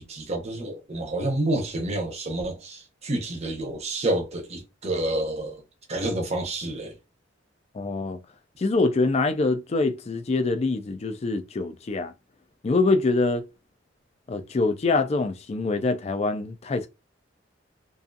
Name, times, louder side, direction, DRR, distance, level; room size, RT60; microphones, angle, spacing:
voice 1, 0.0-5.6 5.9-7.0, right 1 dB, 35° right, 0.7 m, -29 dB
voice 2, 7.7-8.2 8.6-12.1 12.6-13.4 14.3-16.9, left 3 dB, 35° left, 0.3 m, -24 dB
2.5 x 2.3 x 2.5 m
head